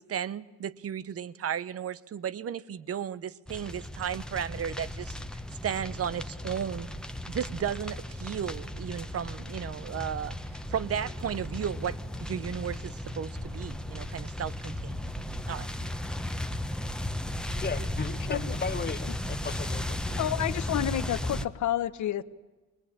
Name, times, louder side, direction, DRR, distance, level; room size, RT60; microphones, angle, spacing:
voice 1, 0.0-5.2 5.6-6.9 7.3-10.4 10.7-15.0 15.5-15.7, right 8 dB, 50° right, 1.0 m, -34 dB
sound 1, 3.5-21.4, left 1 dB, 5° left, 1.1 m, -35 dB
voice 2, 17.6-20.2, left 5 dB, 30° left, 1.3 m, -36 dB
voice 3, 20.2-22.2, left 12 dB, 70° left, 1.1 m, -29 dB
21.5 x 21.0 x 8.7 m
cardioid pair, 90°, 30 cm